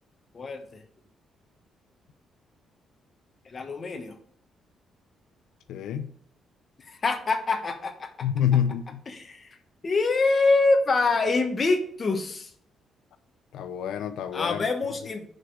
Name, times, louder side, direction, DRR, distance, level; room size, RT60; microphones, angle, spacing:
voice 1, 0.3-0.8 3.4-4.1 6.9-8.3 9.1-9.6 9.8-12.5 14.3-15.3, left 3 dB, 30° left, 6 dB, 1.2 m, -25 dB
voice 2, 5.7-6.1 8.2-9.0 13.5-14.6, left 9 dB, 90° left, 10 dB, 0.6 m, -27 dB
10.5 x 5.0 x 4.7 m, 0.64 s
cardioid pair, 140°, 0 cm